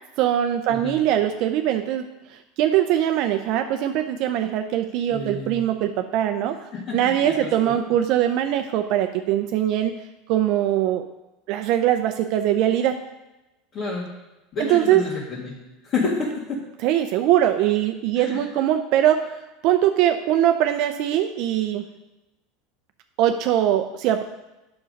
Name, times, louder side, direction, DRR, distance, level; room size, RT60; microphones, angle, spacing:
voice 1, 0.2-6.6 6.9-10.0 10.3-11.1 11.5-13.0 14.6-15.0 16.8-21.8 23.2-24.2, right 11 dB, 60° right, 6 dB, 0.5 m, -22 dB
voice 2, 5.1-5.6 6.7-7.7 13.7-14.1 14.5-15.5 15.8-16.6 18.1-18.4, left 3 dB, 40° left, -6 dB, 2.0 m, -29 dB
7.5 x 6.1 x 5.2 m, 0.99 s
supercardioid pair, 120°, 0 cm